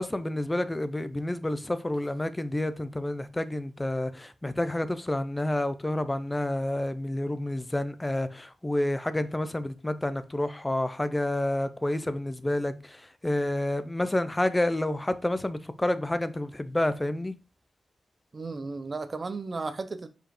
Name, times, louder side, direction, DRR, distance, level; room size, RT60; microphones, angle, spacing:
voice 1, 0.0-17.3, left 1 dB, 10° left, 0.5 m, -29 dB
voice 2, 18.3-20.1, right 3 dB, 30° right, 0.7 m, -34 dB
5.2 x 5.1 x 4.3 m
wide cardioid pair, 165°, 0 cm